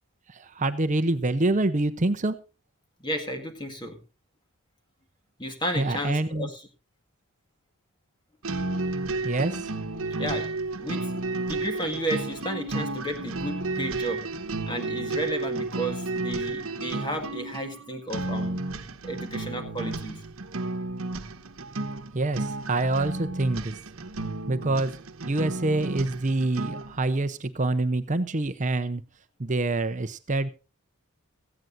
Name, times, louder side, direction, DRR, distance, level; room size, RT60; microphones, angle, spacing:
voice 1, 0.4-2.3 5.8-6.5 9.2-9.7 22.1-23.7 24.5-24.9 25.3-29.0 29.4-30.5, right 2 dB, 35° right, 10 dB, 0.7 m, -26 dB
voice 2, 3.0-4.0 5.4-6.7 10.2-10.5 10.8-14.3 14.7-18.6 19.0-20.2, right 1 dB, 20° left, 5 dB, 1.8 m, -33 dB
sound 1, 8.4-27.0, right 2 dB, 70° right, 1.1 m, -32 dB
17.0 x 15.0 x 2.6 m, 0.31 s
head